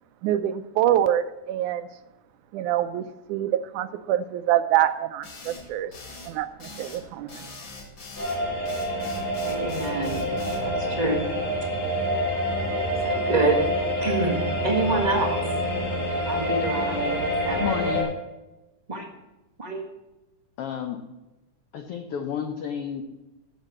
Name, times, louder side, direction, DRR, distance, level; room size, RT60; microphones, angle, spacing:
voice 1, 0.2-1.9 2.5-5.9 6.2-7.4, right 12 dB, 80° right, 12 dB, 1.9 m, -25 dB
sound 1, 5.2-10.7, left 3 dB, 40° left, 2.2 m, -42 dB
sound 2, 8.2-18.0, equal, 55° left, 6.5 m, -27 dB
voice 2, 9.4-10.2 10.6-11.3 13.0-13.6 14.0-15.4 16.3-17.8 18.9-19.1 19.6-19.8, right 2 dB, 30° right, 0 dB, 0.7 m, -27 dB
voice 3, 17.6-18.1 20.6-21.0 21.7-23.0, left 8 dB, 85° left, 6 dB, 1.3 m, -30 dB
12.5 x 7.4 x 7.4 m, 1.0 s
omnidirectional pair, 3.7 m